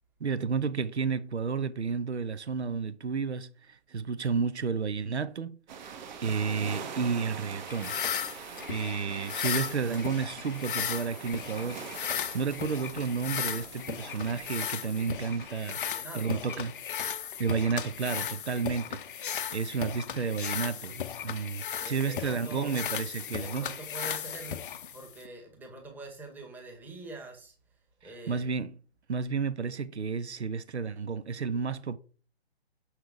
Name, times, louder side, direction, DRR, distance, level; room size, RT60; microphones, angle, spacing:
voice 1, 0.2-5.6 6.2-8.0 8.7-11.8 12.3-15.8 16.1-16.7 17.4-23.7 28.0-28.7 29.1-32.0, right 5 dB, 85° right, 0.8 m, -31 dB
sound 1, 5.7-15.5, right 6 dB, 45° right, 1.3 m, -43 dB
sound 2, 7.7-25.3, left 9 dB, 55° left, 0.6 m, -36 dB
voice 2, 15.8-16.7 21.8-22.9 23.4-27.5 28.0-28.5, right 2 dB, 5° right, 1.3 m, -45 dB
6.5 x 5.8 x 3.5 m
hypercardioid pair, 140°, 33 cm